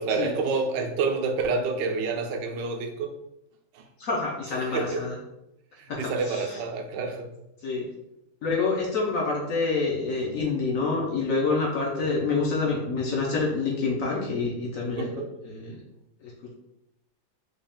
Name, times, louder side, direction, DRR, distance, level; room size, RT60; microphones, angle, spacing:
voice 1, 0.0-3.2 3.7-3.8 4.6-5.0 5.8-7.3 12.0-12.2 15.0-15.3, right 4 dB, 75° right, 4 dB, 1.1 m, -28 dB
voice 2, 4.0-5.2 5.9-6.0 6.2-6.6 7.6-7.9 8.4-15.1 15.4-15.7 16.2-16.5, left 4 dB, 65° left, -3 dB, 0.8 m, -27 dB
4.0 x 2.4 x 3.5 m, 0.86 s
omnidirectional pair, 2.1 m